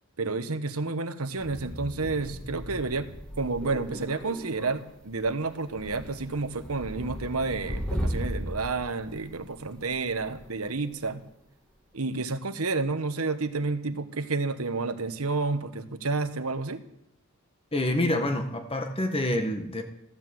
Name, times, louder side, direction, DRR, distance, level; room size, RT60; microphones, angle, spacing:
voice 1, 0.2-3.1 3.4-11.2 11.9-16.8, right 3 dB, 85° right, 9 dB, 1.4 m, -30 dB
sound 1, 1.4-10.9, equal, 5° left, 2.0 m, -37 dB
voice 2, 17.7-19.8, left 1 dB, 25° left, 6 dB, 1.7 m, -27 dB
15.0 x 12.0 x 7.8 m, 0.80 s
head